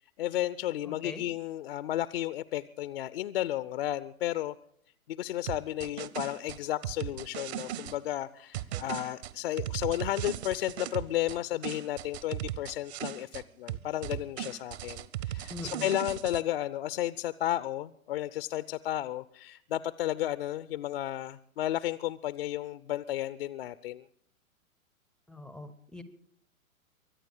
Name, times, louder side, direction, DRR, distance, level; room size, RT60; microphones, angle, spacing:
voice 1, 0.2-4.6 5.1-15.5 15.8-24.1, left 13 dB, 45° left, 16 dB, 0.5 m, -33 dB
voice 2, 0.8-1.2 15.5-15.9 25.3-26.0, left 2 dB, ahead, 11 dB, 0.5 m, -43 dB
sound 1, 5.5-8.0 8.5-11.4 11.6-13.4 13.7-16.4, right 13 dB, 50° right, 1.0 m, -37 dB
24.0 x 8.9 x 6.6 m, 0.67 s
figure-of-eight pair, 120°, 42 cm